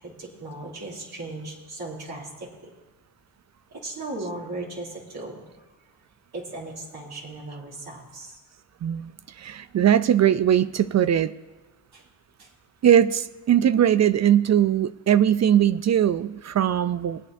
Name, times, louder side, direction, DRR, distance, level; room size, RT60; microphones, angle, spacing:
voice 1, 0.0-2.7 3.7-5.4 6.3-8.4 11.9-12.0 12.4-12.5, right 2 dB, 60° right, -5 dB, 3.0 m, -37 dB
voice 2, 8.8-9.1 9.4-11.3 12.8-17.2, right 10 dB, 40° right, 15 dB, 0.5 m, -20 dB
21.5 x 8.1 x 2.7 m, 1.2 s
supercardioid pair, 60°, 42 cm